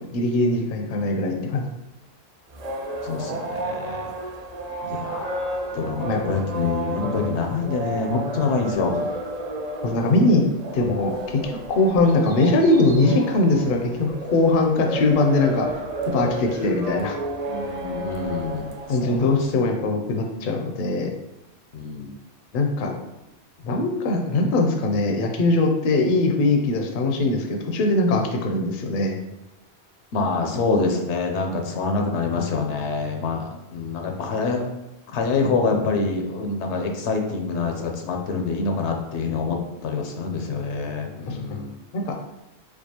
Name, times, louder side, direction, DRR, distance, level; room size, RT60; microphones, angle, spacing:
voice 1, 0.1-1.6 6.0-6.2 9.8-10.5 10.7-15.7 16.1-17.2 18.9-21.1 22.5-22.9 23.6-29.2 41.3-41.4 41.9-42.1, left 2 dB, 60° left, 3 dB, 0.6 m, -21 dB
voice 2, 1.3-1.6 3.0-4.1 4.8-9.0 17.5-18.7 19.0-19.3 21.7-22.2 30.1-34.6 35.1-39.6 39.8-41.8, left 4 dB, 85° left, 3 dB, 0.9 m, -26 dB
sound 1, 2.5-19.5, right 1 dB, 50° right, 0.5 m, -32 dB
4.5 x 2.4 x 2.8 m, 0.91 s
omnidirectional pair, 1.1 m